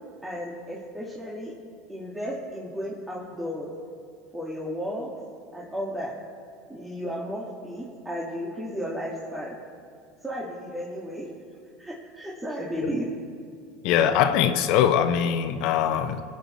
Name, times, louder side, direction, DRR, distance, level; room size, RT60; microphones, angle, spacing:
voice 1, 0.2-1.5 1.9-3.7 4.3-5.1 5.5-6.1 6.7-9.6 10.2-11.3 11.8-13.1, equal, 10° right, -5 dB, 1.8 m, -33 dB
voice 2, 13.8-16.2, left 9 dB, 65° left, 8 dB, 0.7 m, -22 dB
24.5 x 8.5 x 3.1 m, 2.3 s
hypercardioid pair, 90°, 0 cm